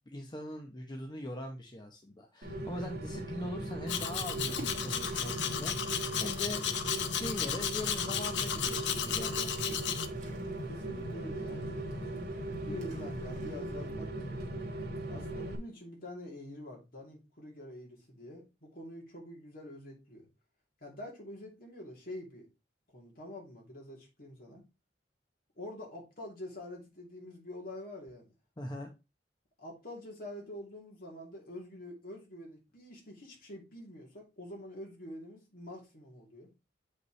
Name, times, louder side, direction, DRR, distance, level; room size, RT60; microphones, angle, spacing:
voice 1, 0.1-5.7 6.2-6.6 6.9-9.6 28.6-28.9, left 1 dB, 25° left, 2 dB, 0.9 m, -41 dB
Rain, 2.4-15.6, right 1 dB, 60° right, 1.6 m, -39 dB
Domestic sounds home sounds, 3.9-10.1, left 9 dB, 75° left, 0.7 m, -34 dB
Splash splatter, 3.9-13.9, right 1 dB, 45° right, 2.3 m, -55 dB
voice 2, 10.7-12.2 12.7-14.6 15.1-20.3 20.8-22.5 22.9-24.6 25.6-28.3 29.6-36.5, left 1 dB, 55° left, -1 dB, 3.0 m, -46 dB
8.0 x 5.4 x 3.2 m, 0.27 s
head